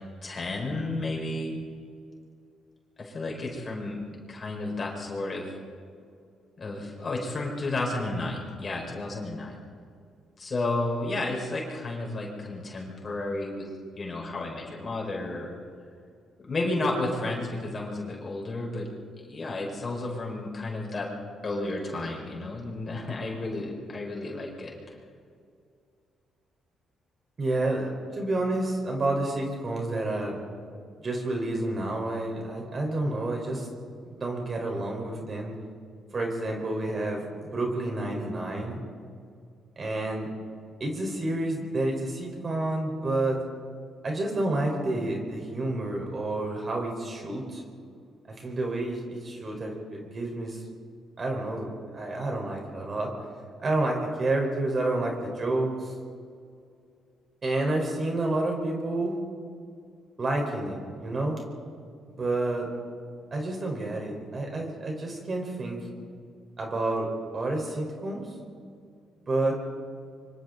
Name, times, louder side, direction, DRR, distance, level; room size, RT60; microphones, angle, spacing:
voice 1, 0.2-1.6 3.0-4.0 4.3-5.5 6.6-9.5 10.4-13.6 14.0-15.5 16.5-18.9 19.2-21.1 21.4-24.7, left 2 dB, 35° left, -1 dB, 5.5 m, -32 dB
voice 2, 27.4-30.4 31.0-33.7 34.0-35.5 36.1-38.8 39.8-40.3 40.8-43.4 44.0-47.6 48.4-50.6 51.2-53.1 53.6-55.9 57.4-59.2 60.2-61.4 62.2-62.7 63.3-65.8 66.6-68.2 69.2-69.6, right 2 dB, 40° right, 1 dB, 4.8 m, -29 dB
25.5 x 25.0 x 4.1 m, 2.3 s
cardioid pair, 90°, 0 cm